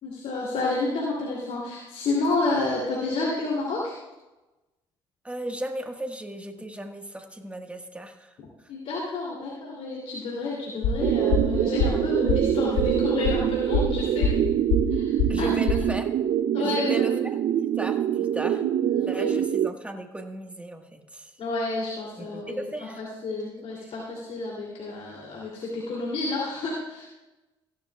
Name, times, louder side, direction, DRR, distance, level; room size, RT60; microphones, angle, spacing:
voice 1, 0.0-3.9 8.7-14.3 14.9-15.5 16.5-17.2 18.5-19.4 21.4-22.6 23.0-27.1, left 3 dB, 65° left, -4 dB, 2.8 m, -30 dB
voice 2, 5.2-8.4 15.3-16.1 16.6-18.6 19.0-21.3 22.2-23.0, right 2 dB, 10° right, 4 dB, 1.5 m, -35 dB
sound 1, 10.8-15.9, left 4 dB, 85° left, 1.4 m, -25 dB
sound 2, 11.0-19.7, right 10 dB, 65° right, 0.5 m, -25 dB
15.5 x 11.5 x 2.3 m, 1.1 s
supercardioid pair, 60°, 12 cm